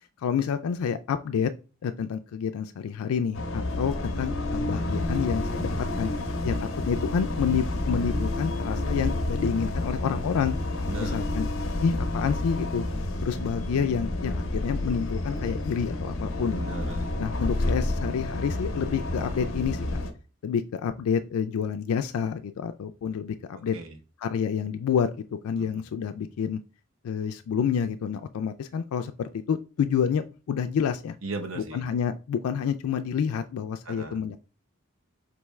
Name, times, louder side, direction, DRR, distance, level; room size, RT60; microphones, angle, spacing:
voice 1, 0.2-1.5 1.8-5.7 6.0-6.1 6.4-6.5 6.9-10.6 11.0-11.5 11.8-12.8 13.2-16.6 17.2-20.0 20.4-23.7 24.2-26.6 27.0-31.2 31.7-34.4, left 7 dB, 85° left, 8 dB, 0.3 m, -28 dB
sound 1, 3.3-20.1, left 2 dB, 65° left, 0.7 m, -29 dB
voice 2, 16.5-17.1 23.7-24.0 25.6-25.8 31.2-31.8 33.8-34.2, right 3 dB, 70° right, 5 dB, 0.8 m, -37 dB
4.9 x 3.5 x 3.1 m, 0.34 s
head